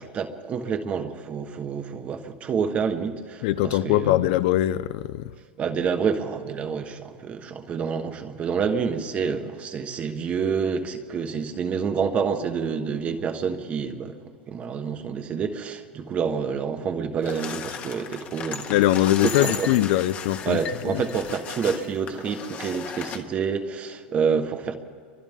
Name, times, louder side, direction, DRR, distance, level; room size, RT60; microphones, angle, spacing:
voice 1, 0.0-4.2 5.6-14.2 14.5-18.7 19.2-19.7 20.4-24.8, right 6 dB, 25° right, 1.3 m, -28 dB
voice 2, 3.4-5.3 18.7-21.0, left 14 dB, 55° left, 0.6 m, -22 dB
sound 1, 17.2-23.2, left 7 dB, 30° left, 1.5 m, -36 dB
29.5 x 24.5 x 3.7 m
supercardioid pair, 155°, 5 cm